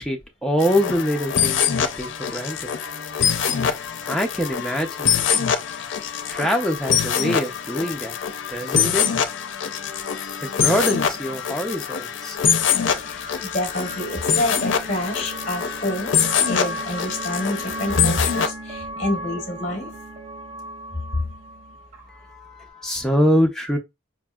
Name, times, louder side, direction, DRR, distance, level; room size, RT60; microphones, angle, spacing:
voice 1, 0.0-2.7 4.1-4.9 6.3-8.1 8.5-9.0 10.4-12.4 22.1-23.8, equal, 5° left, 0.5 m, -24 dB
sound 1, 0.6-18.5, left 7 dB, 70° left, 0.5 m, -24 dB
sound 2, 12.4-22.7, right 1 dB, 40° right, 1.1 m, -36 dB
voice 2, 13.1-19.9, left 1 dB, 35° left, 0.8 m, -28 dB
4.8 x 2.6 x 2.3 m
head